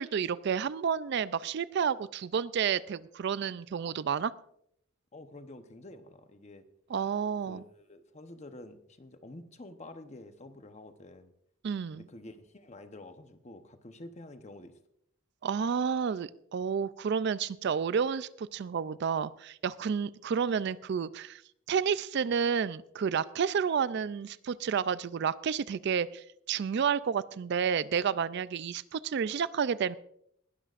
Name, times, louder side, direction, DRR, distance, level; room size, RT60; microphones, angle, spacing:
voice 1, 0.0-4.3 6.9-7.6 11.6-12.0 15.4-21.4 21.7-30.0, right 7 dB, 55° right, 17 dB, 0.4 m, -30 dB
voice 2, 5.1-6.7 7.5-11.3 11.9-14.8, left 2 dB, 35° left, 8 dB, 0.9 m, -49 dB
20.0 x 12.0 x 2.5 m, 0.71 s
head